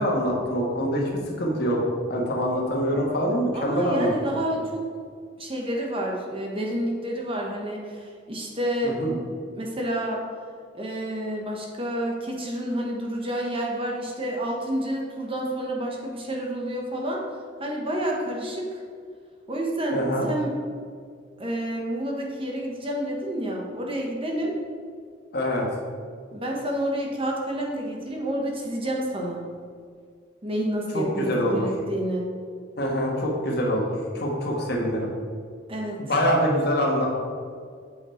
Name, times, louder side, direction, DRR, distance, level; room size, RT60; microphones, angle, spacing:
voice 1, 0.0-1.8 2.1-4.4 8.8-9.1 19.9-20.3 25.3-25.6 30.9-31.7 32.8-35.1 36.0-37.2, equal, 55° left, -1 dB, 1.5 m, -25 dB
voice 2, 3.5-4.8 5.4-9.0 9.6-10.2 10.7-17.2 17.6-18.8 19.5-20.5 21.4-24.5 26.3-29.4 30.4-32.2 35.7-36.0, right 1 dB, 30° right, -1 dB, 1.2 m, -29 dB
8.1 x 5.6 x 4.4 m, 2.1 s
head